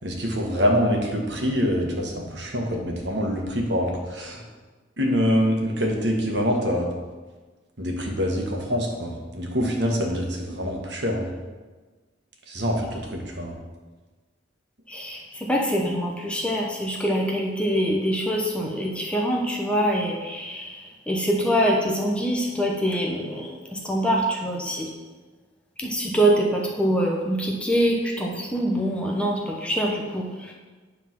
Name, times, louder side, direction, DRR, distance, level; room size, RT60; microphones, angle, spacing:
voice 1, 0.0-4.4 5.0-6.9 7.8-11.3 12.5-13.5, equal, 60° right, 1 dB, 1.4 m, -25 dB
voice 2, 14.9-24.9 25.8-30.5, equal, 5° left, -1 dB, 0.8 m, -24 dB
9.7 x 3.7 x 6.0 m, 1.3 s
head